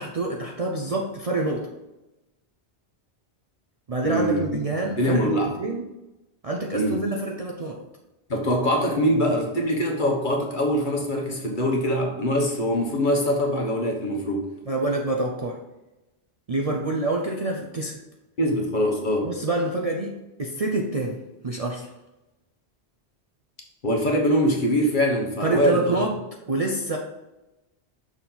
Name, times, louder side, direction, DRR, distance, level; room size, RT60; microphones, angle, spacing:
voice 1, 0.0-1.7 3.9-5.8 6.4-7.8 14.7-15.6 16.5-18.0 19.2-21.2 21.4-21.9 25.4-26.1 26.5-27.0, right 2 dB, 40° right, 0 dB, 0.6 m, -27 dB
voice 2, 4.0-5.5 6.7-7.0 8.3-14.5 18.4-19.3 23.8-26.0, equal, 45° left, 0 dB, 1.2 m, -23 dB
6.2 x 4.3 x 3.8 m, 1.0 s
omnidirectional pair, 1.1 m